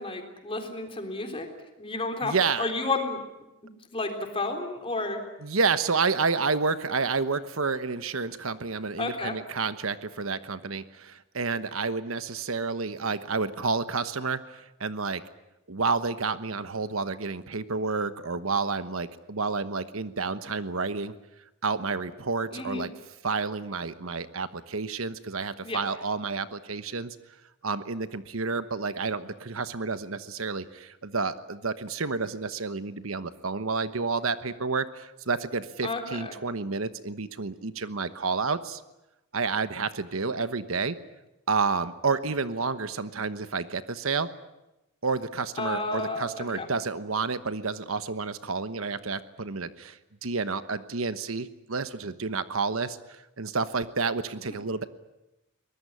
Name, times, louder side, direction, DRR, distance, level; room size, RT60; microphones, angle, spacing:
voice 1, 0.0-1.5 1.8-3.2 3.9-5.2 9.0-9.4 22.5-22.9 25.6-25.8 35.8-36.3 45.6-46.7 54.5-54.6, left 3 dB, 25° left, 4 dB, 3.7 m, -31 dB
voice 2, 2.2-2.7 5.4-15.2 15.7-21.1 21.6-22.9 23.2-27.2 27.6-38.8 39.3-41.0 41.5-44.3 45.0-54.8, right 4 dB, 75° right, 12 dB, 1.2 m, -30 dB
23.0 x 20.0 x 9.8 m, 0.96 s
head